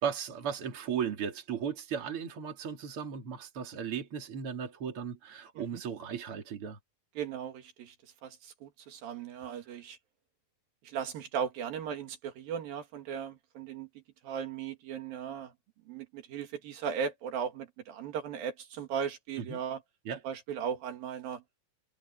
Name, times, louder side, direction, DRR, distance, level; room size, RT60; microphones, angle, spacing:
voice 1, 0.0-6.8 19.4-19.6 20.0-20.2, right 7 dB, 40° right, 3.4 m, -36 dB
voice 2, 7.2-8.0 8.2-10.0 10.8-13.9 14.2-15.5 15.9-19.8 20.2-21.4, right 7 dB, 80° right, 3.8 m, -37 dB
omnidirectional pair, 4.1 m